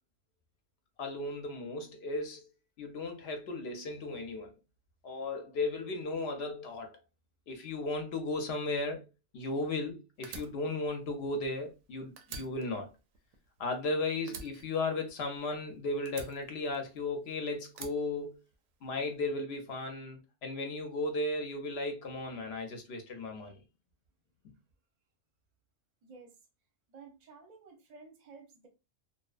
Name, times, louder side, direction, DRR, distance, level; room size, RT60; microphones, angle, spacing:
voice 1, 1.0-2.5 2.8-4.5 5.0-7.0 7.5-9.0 9.3-12.9 13.6-18.4 18.8-23.6, left 2 dB, 60° left, 0.8 m, -35 dB
Fire, 10.2-11.9 12.2-13.9 14.3-15.6 16.1-17.2 17.7-18.9, right 5 dB, 85° right, 1.0 m, -48 dB
voice 2, 26.0-26.4 26.9-28.7, right 4 dB, 45° right, 0.6 m, -53 dB
2.7 x 2.0 x 2.3 m
omnidirectional pair, 1.3 m